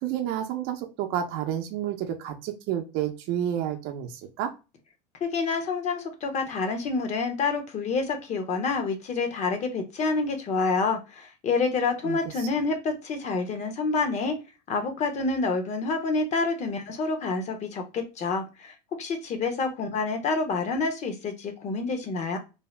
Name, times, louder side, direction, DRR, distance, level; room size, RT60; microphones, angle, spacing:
voice 1, 0.0-4.5 12.0-12.5, right 10 dB, 60° right, 5 dB, 0.6 m, -30 dB
voice 2, 5.2-14.4 14.7-22.4, left 4 dB, 35° left, 6 dB, 0.8 m, -28 dB
2.7 x 2.0 x 3.1 m, 0.28 s
supercardioid pair, 115°, 19 cm